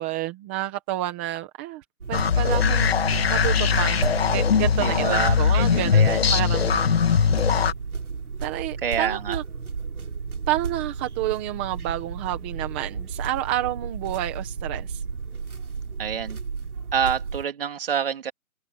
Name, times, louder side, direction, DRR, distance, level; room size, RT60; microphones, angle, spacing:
voice 1, 0.0-3.0 3.3-4.0 4.3-6.9 8.4-9.4 10.5-15.0, right 14 dB, 10° right, 1.3 m, -29 dB
sound 1, 2.0-17.4, right 5 dB, 80° right, 3.9 m, -33 dB
sound 2, 2.1-7.7, left 6 dB, 45° left, 1.9 m, -21 dB
voice 2, 4.8-6.3 8.8-9.4 16.0-16.4 16.9-18.3, right 8 dB, 40° right, 3.6 m, -27 dB
open air
hypercardioid pair, 170°, 44 cm